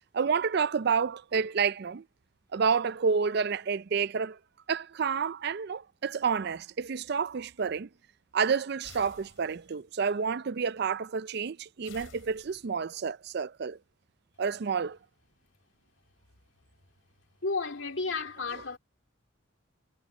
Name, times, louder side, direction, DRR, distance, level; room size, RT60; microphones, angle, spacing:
voice 1, 0.1-2.0 2.5-4.4 4.7-7.9 8.3-13.8 14.4-15.0, right 6 dB, 50° right, 0.4 m, -29 dB
sound 1, 8.8-9.8 11.8-12.9, left 4 dB, 85° left, 4.3 m, -52 dB
voice 2, 17.4-18.8, left 4 dB, 65° left, 2.4 m, -32 dB
head